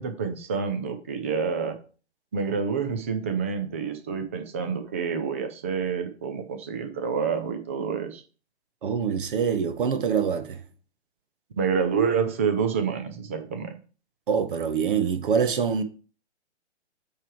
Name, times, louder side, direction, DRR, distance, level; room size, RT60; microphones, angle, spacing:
voice 1, 0.0-1.8 2.3-8.2 11.6-13.7, right 6 dB, 15° right, 0.3 m, -28 dB
voice 2, 8.8-10.6 14.3-15.8, right 6 dB, 50° right, 0.9 m, -25 dB
8.5 x 3.3 x 4.6 m
figure-of-eight pair, 125°, 34 cm